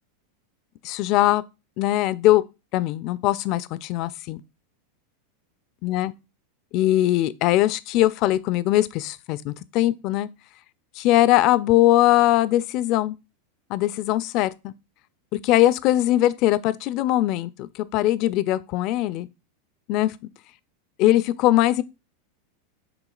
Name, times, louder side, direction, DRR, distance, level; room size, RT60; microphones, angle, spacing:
voice 1, 0.8-1.4 1.8-2.4 2.7-4.4 5.8-6.1 6.7-10.3 11.0-13.1 13.7-14.7 15.3-19.3 19.9-20.1 21.0-21.8, left 15 dB, 50° left, 0.3 m, -21 dB
5.9 x 3.6 x 2.3 m
hypercardioid pair, 115°, 0 cm